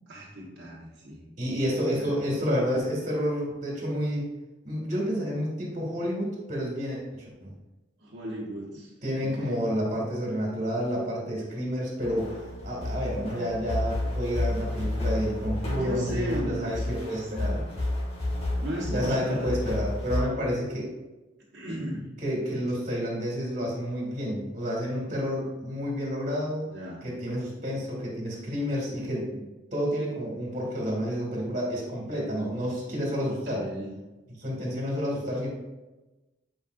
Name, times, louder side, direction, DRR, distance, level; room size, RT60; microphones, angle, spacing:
voice 1, 0.1-1.2 2.0-2.1 8.0-8.9 9.2-9.7 15.8-17.6 18.6-19.5 21.5-22.1 26.6-27.1 33.2-33.9, right 1 dB, 60° right, -7 dB, 1.4 m, -36 dB
voice 2, 1.4-4.3 4.6-7.5 9.0-12.3 12.6-17.6 18.9-20.9 22.2-26.6 27.0-29.4 29.7-33.6 34.4-35.5, equal, 40° right, -3 dB, 2.2 m, -30 dB
sound 1, 12.0-20.2, left 1 dB, 35° left, 1.9 m, -31 dB
8.9 x 5.1 x 2.6 m, 1.1 s
head